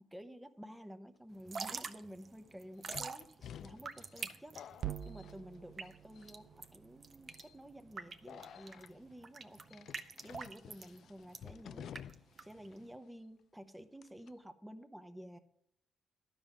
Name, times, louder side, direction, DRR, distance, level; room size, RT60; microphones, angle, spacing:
voice 1, 0.1-4.6 5.0-9.9 10.2-15.4, equal, 5° right, 8 dB, 0.9 m, -52 dB
Drip / Trickle dribble, 1.3-12.9, right 4 dB, 40° right, 0.8 m, -46 dB
sound 1, 1.5-1.6 2.9-5.9 6.1-6.7 7.3-7.5 8.3-8.9 9.7-12.4 12.7-12.8 14.0-14.3, left 9 dB, 70° left, 0.3 m, -52 dB
sound 2, 4.8-9.1, right 10 dB, 60° right, 0.5 m, -48 dB
12.0 x 5.3 x 7.2 m, 0.74 s
cardioid pair, 90°, 0 cm